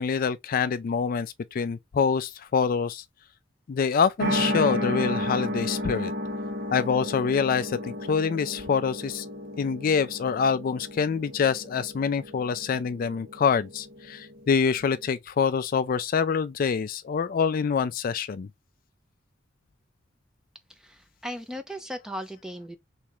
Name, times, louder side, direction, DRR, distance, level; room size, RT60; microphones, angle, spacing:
voice 1, 0.0-3.0 3.7-6.1 6.7-9.3 9.6-18.5, left 6 dB, 50° left, 0.3 m, -26 dB
sound 1, 4.2-15.0, left 1 dB, 55° right, 1.7 m, -33 dB
voice 2, 20.7-22.8, equal, 5° right, 0.6 m, -37 dB
3.5 x 3.2 x 3.0 m
head